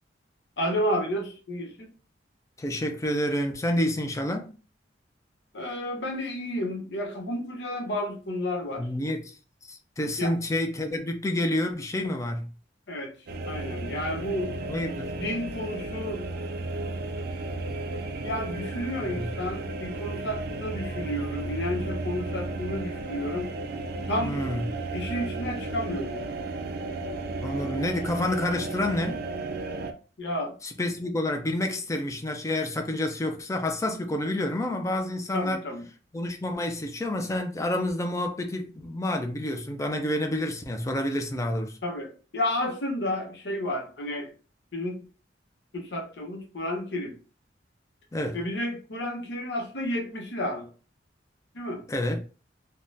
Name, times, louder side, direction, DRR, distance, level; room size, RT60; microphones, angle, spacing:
voice 1, 0.6-1.9 5.5-8.9 10.2-10.3 12.9-13.1 13.5-14.6 15.2-16.3 18.2-23.5 24.1-24.4 24.9-26.2 30.2-30.5 35.3-35.9 41.8-44.3 44.7-45.0 45.7-47.1 48.3-50.7 51.5-51.8, left 1 dB, 70° left, 0.8 m, -31 dB
voice 2, 2.6-4.5 8.8-9.3 9.6-12.5 14.7-15.2 19.1-19.3 24.2-24.7 27.4-29.2 30.6-35.6 36.1-41.8 48.1-48.4 51.9-52.2, left 1 dB, 15° left, 0.4 m, -29 dB
sound 1, 13.3-29.9, right 2 dB, 55° right, 0.4 m, -34 dB
3.5 x 2.2 x 2.6 m
head